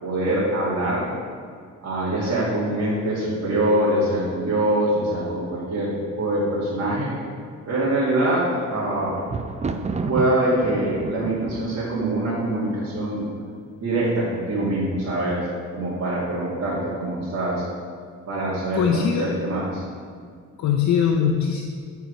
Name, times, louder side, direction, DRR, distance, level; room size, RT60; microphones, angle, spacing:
voice 1, 0.0-1.1 1.8-5.9 6.2-7.1 7.7-9.2 10.1-13.3 13.8-17.6 18.3-19.8, right 1 dB, 55° right, -9 dB, 2.3 m, -24 dB
Thunder, 8.4-13.4 14.1-14.6 14.9-15.0, right 4 dB, 25° right, 0.5 m, -32 dB
voice 2, 18.7-19.3 20.6-21.6, left 7 dB, 65° left, 2 dB, 0.7 m, -21 dB
10.0 x 4.6 x 5.1 m, 2.1 s
cardioid pair, 90°, 30 cm